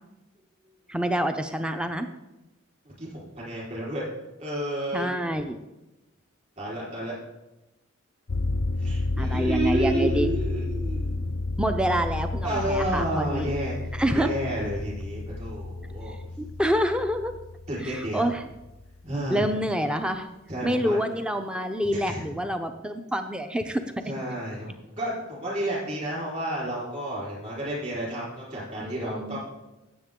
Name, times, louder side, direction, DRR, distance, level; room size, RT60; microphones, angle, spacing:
voice 1, 0.9-2.1 4.9-5.6 9.2-10.3 11.6-13.6 13.9-14.3 16.4-17.3 17.8-18.5 19.3-20.3 20.6-23.8 28.8-29.4, equal, 5° right, 7 dB, 0.5 m, -27 dB
voice 2, 3.0-4.0 4.4-5.1 6.6-7.1 8.8-11.1 12.4-13.8 14.1-16.1 17.7-18.2 19.0-19.4 20.5-21.0 22.1-22.2 24.1-29.4, right 1 dB, 35° right, -5 dB, 4.4 m, -31 dB
sound 1, 8.3-19.1, left 2 dB, 85° left, 0.7 m, -31 dB
16.5 x 7.4 x 3.7 m, 0.99 s
head